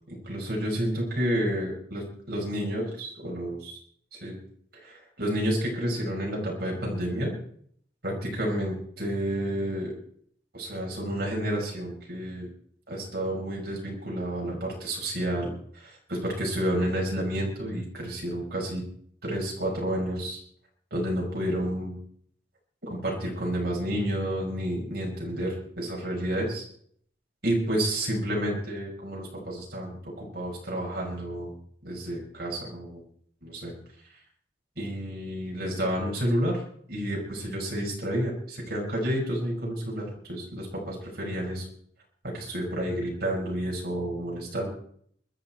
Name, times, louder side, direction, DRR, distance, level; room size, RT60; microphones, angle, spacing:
voice 1, 0.1-3.8 4.1-4.4 4.8-7.3 8.0-9.9 10.5-12.5 12.9-18.8 19.2-20.4 20.9-22.0 22.8-26.6 27.4-31.5 31.8-33.0 33.4-33.7 34.8-36.6 36.9-41.7 42.2-44.7, equal, 60° right, -3 dB, 5.7 m, -30 dB
24.0 x 13.0 x 4.5 m, 0.64 s
head